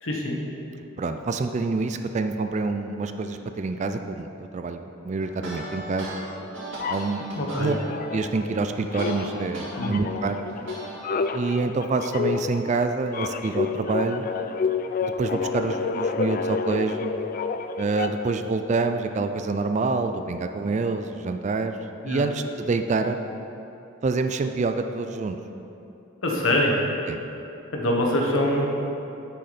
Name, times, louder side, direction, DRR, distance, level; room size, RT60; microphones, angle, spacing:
voice 1, 0.0-0.4 7.3-7.8 9.7-10.0 22.0-22.3 26.2-26.7 27.7-28.7, left 1 dB, 85° left, -1 dB, 1.3 m, -24 dB
voice 2, 1.0-6.2 6.9-7.3 7.5-7.7 8.1-10.4 11.3-14.3 15.0-17.1 17.8-21.8 22.0-23.2 24.0-25.4 27.1-27.2, right 3 dB, 35° right, 7 dB, 0.3 m, -27 dB
sound 1, 5.2-9.7 10.1-11.3, right 1 dB, 70° right, 1.9 m, -38 dB
sound 2, 6.8-8.6 8.9-18.4, left 5 dB, 45° left, 0.3 m, -29 dB
10.0 x 6.4 x 4.1 m, 3.0 s
head